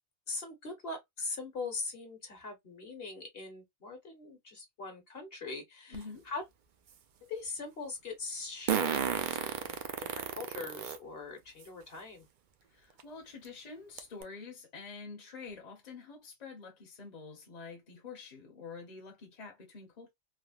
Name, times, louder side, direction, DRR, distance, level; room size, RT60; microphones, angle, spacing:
voice 1, 0.3-6.4 7.2-9.0 9.3-12.3, left 3 dB, 60° left, 1.2 m, -41 dB
voice 2, 5.9-6.3 12.7-20.1, left 4 dB, 40° left, 0.9 m, -47 dB
Fart, 5.9-6.0 8.7-11.0 11.6-11.7 13.0-13.1 13.5-13.6 14.0-14.2, right 8 dB, 55° right, 0.6 m, -32 dB
3.4 x 2.1 x 2.3 m
omnidirectional pair, 1.2 m